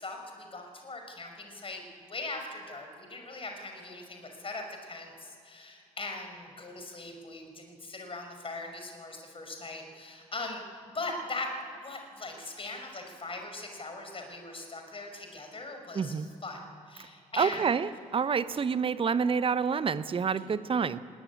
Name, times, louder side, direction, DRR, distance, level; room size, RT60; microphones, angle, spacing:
voice 1, 0.0-10.6 10.9-11.5 11.8-16.1 16.4-16.6 16.9-17.7, left 2 dB, 30° left, 4 dB, 5.6 m, -40 dB
voice 2, 15.9-16.3 17.4-21.0, right 6 dB, 30° right, 15 dB, 0.9 m, -28 dB
20.5 x 17.0 x 9.9 m, 2.4 s
figure-of-eight pair, 45°, 18 cm